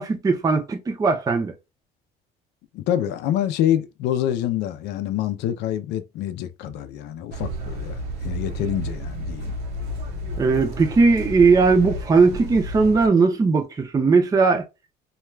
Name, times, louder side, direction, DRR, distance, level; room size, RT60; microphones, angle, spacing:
voice 1, 0.0-1.5 10.4-14.6, right 4 dB, 20° right, 0.4 m, -18 dB
voice 2, 2.7-9.5, left 11 dB, 85° left, 0.5 m, -26 dB
sound 1, 7.3-13.1, equal, 90° right, 0.8 m, -32 dB
2.3 x 2.2 x 3.1 m
cardioid pair, 110°, 17 cm